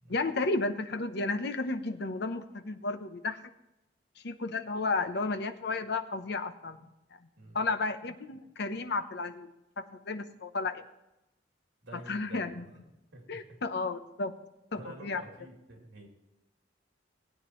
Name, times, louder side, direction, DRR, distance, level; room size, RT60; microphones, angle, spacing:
voice 1, 0.1-3.4 4.2-6.9 7.2-7.3 7.5-9.5 9.8-10.8 11.9-12.7 13.3-14.3 14.7-15.2, left 3 dB, 65° left, 9 dB, 0.9 m, -33 dB
voice 2, 11.8-13.4 14.8-16.1, right 1 dB, 80° right, 0 dB, 3.0 m, -49 dB
19.0 x 9.1 x 3.1 m, 0.92 s
head